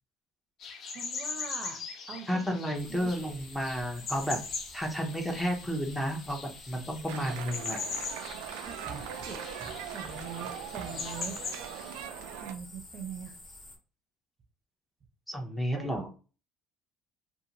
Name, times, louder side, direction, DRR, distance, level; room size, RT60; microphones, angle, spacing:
sound 1, 0.6-12.1, left 5 dB, 55° left, 0.7 m, -41 dB
voice 1, 0.9-1.8 2.1-2.4 2.9-3.1 8.6-11.4 12.4-13.3 15.7-16.1, right 5 dB, 40° right, 5 dB, 0.6 m, -42 dB
voice 2, 2.3-4.4 4.7-7.8 15.3-16.1, equal, 10° left, 2 dB, 0.7 m, -32 dB
sound 2, 2.7-13.8, left 2 dB, 35° left, 1.2 m, -50 dB
sound 3, 7.1-12.6, right 9 dB, 85° right, 0.3 m, -41 dB
2.5 x 2.5 x 2.9 m, 0.36 s
supercardioid pair, 105°, 0 cm